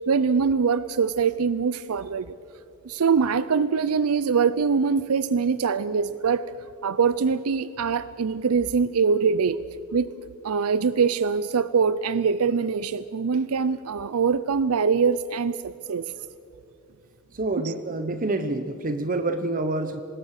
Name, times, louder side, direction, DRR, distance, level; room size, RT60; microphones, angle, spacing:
voice 1, 0.0-2.3 2.8-6.5 6.8-9.6 9.9-10.1 10.4-16.1 17.6-17.7, right 5 dB, 80° right, 16 dB, 0.5 m, -23 dB
voice 2, 17.3-20.0, right 2 dB, 40° right, 9 dB, 0.9 m, -27 dB
25.0 x 20.0 x 6.5 m, 2.8 s
head